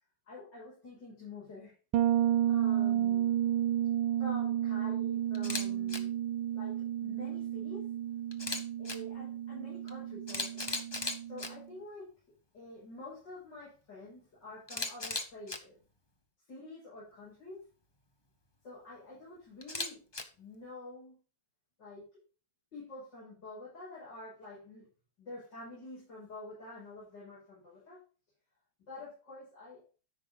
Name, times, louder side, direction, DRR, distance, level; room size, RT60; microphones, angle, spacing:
voice 1, 0.3-1.7 2.4-3.4 4.2-6.2 6.5-7.8 8.8-10.8 11.3-12.1 12.5-15.8 16.5-17.6 18.6-20.0 20.3-21.1 21.8-22.2 22.7-24.9 25.2-28.0 28.8-29.8, left 2 dB, 70° left, -7 dB, 6.5 m, -48 dB
Bass guitar, 1.9-11.6, right 11 dB, 85° right, 1.3 m, -32 dB
Camera, 5.3-5.6 5.9-6.0 8.3-9.0 9.9-10.0 10.3-11.5 14.7-15.6 19.6-20.2, left 2 dB, 20° left, 0.7 m, -36 dB
13.5 x 5.5 x 3.8 m, 0.34 s
omnidirectional pair, 2.0 m